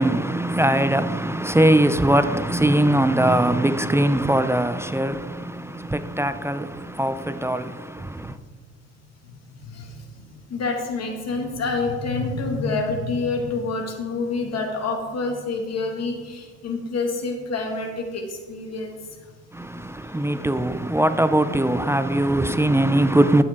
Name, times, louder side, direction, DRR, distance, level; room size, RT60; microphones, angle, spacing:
voice 1, 0.0-8.4 19.5-23.4, right 1 dB, 10° right, 0.5 m, -21 dB
voice 2, 9.7-19.0, left 3 dB, 55° left, 2.2 m, -27 dB
12.5 x 8.4 x 3.7 m
cardioid pair, 90°, 30 cm